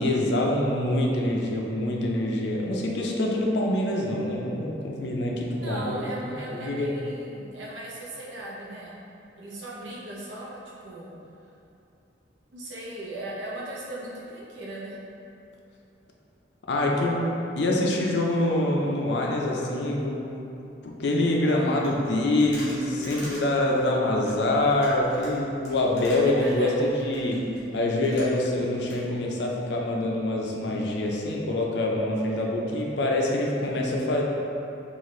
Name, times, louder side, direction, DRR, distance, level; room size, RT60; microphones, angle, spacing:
voice 1, 0.0-7.0 16.7-20.4 20.8-34.2, left 1 dB, 60° left, -1 dB, 0.4 m, -25 dB
voice 2, 5.6-9.0 9.4-11.2 12.5-15.0 26.2-26.7, right 1 dB, 70° right, -5 dB, 0.7 m, -38 dB
sound 1, 21.8-28.6 28.9-29.0, equal, 40° left, 1.0 m, -45 dB
4.1 x 2.4 x 3.1 m, 2.8 s
head